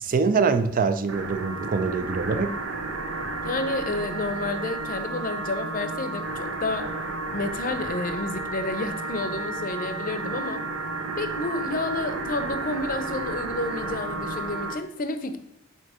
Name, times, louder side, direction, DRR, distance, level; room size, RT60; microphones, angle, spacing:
voice 1, 0.0-2.6, right 4 dB, 45° right, 10 dB, 0.5 m, -24 dB
sound 1, 1.1-14.8, right 3 dB, 85° right, 0.7 m, -32 dB
voice 2, 3.4-6.9 7.3-10.6 11.2-15.4, left 2 dB, 45° left, 9 dB, 0.6 m, -30 dB
7.9 x 2.9 x 4.8 m, 0.85 s
head